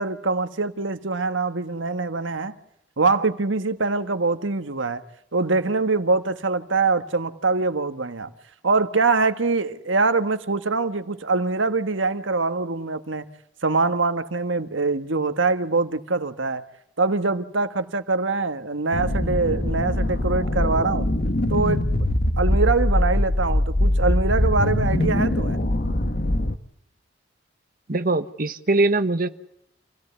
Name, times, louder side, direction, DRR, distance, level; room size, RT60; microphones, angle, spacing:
voice 1, 0.0-2.6 3.0-5.0 5.3-8.3 8.6-13.3 13.6-16.6 17.0-21.1 21.5-21.8 22.4-25.6, right 3 dB, 85° right, 1.5 m, -23 dB
sound 1, 18.9-26.5, left 1 dB, 50° left, 1.3 m, -22 dB
voice 2, 27.9-29.3, right 2 dB, 50° right, 1.3 m, -22 dB
28.5 x 17.0 x 8.3 m
head